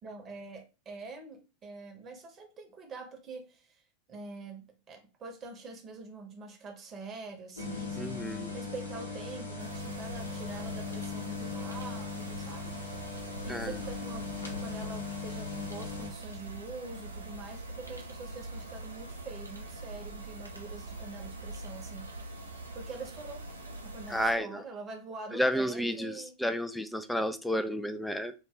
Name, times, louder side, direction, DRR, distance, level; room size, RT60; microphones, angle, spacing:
voice 1, 0.0-3.8 4.1-8.2 8.5-12.8 13.4-22.3 22.7-23.5 23.8-26.3, right 3 dB, 25° right, 0.8 m, -45 dB
sound 1, 7.6-16.1, left 4 dB, 75° left, 0.8 m, -39 dB
voice 2, 8.0-8.5 13.5-13.7 24.1-24.6 25.3-28.3, equal, ahead, 0.3 m, -31 dB
sound 2, 9.6-24.3, right 2 dB, 80° right, 0.5 m, -43 dB
2.2 x 2.2 x 3.5 m
figure-of-eight pair, 90°, 0 cm